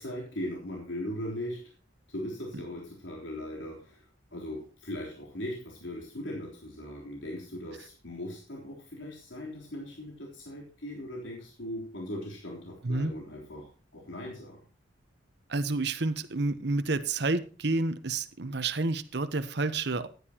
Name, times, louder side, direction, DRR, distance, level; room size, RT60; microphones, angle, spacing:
voice 1, 0.0-1.7 2.1-14.6, left 1 dB, 85° left, -2 dB, 3.6 m, -39 dB
voice 2, 15.5-20.1, right 3 dB, 60° right, 10 dB, 1.0 m, -29 dB
15.0 x 10.5 x 2.9 m, 0.37 s
head